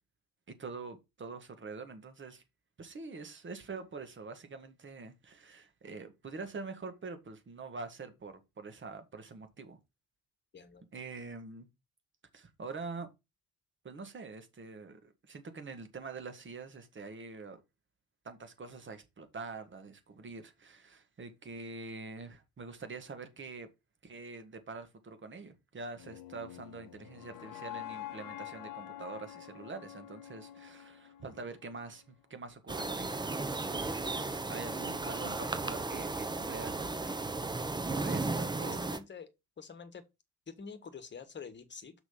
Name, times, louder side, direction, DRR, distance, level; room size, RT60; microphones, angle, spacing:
voice 1, 0.5-2.4 2.8-9.8 10.9-11.7 12.3-13.1 13.8-17.6 18.2-23.7 24.0-33.2 33.7-37.3 37.9-38.8, right 4 dB, 30° right, 1.8 m, -45 dB
sound 1, 25.9-32.1, left 12 dB, 55° left, 0.9 m, -47 dB
sound 2, 32.7-39.0, right 3 dB, 10° right, 1.0 m, -35 dB
voice 2, 38.7-39.3 39.6-40.0 40.5-41.9, left 5 dB, 25° left, 1.6 m, -47 dB
6.1 x 5.3 x 5.7 m
figure-of-eight pair, 55°, 41 cm